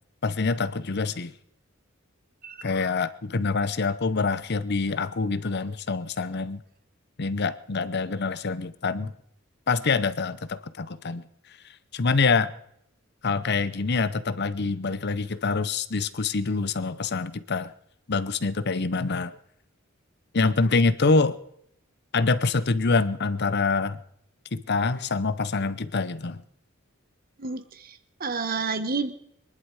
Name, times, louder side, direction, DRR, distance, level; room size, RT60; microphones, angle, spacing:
voice 1, 0.2-1.3 2.6-6.6 7.2-9.1 9.7-11.2 11.9-12.5 13.2-17.7 18.1-19.4 20.3-21.4 22.1-24.0 24.5-26.4, left 4 dB, 55° left, 15 dB, 0.8 m, -25 dB
voice 2, 27.4-29.1, right 4 dB, 45° right, 11 dB, 1.2 m, -30 dB
23.5 x 11.0 x 4.8 m, 0.74 s
head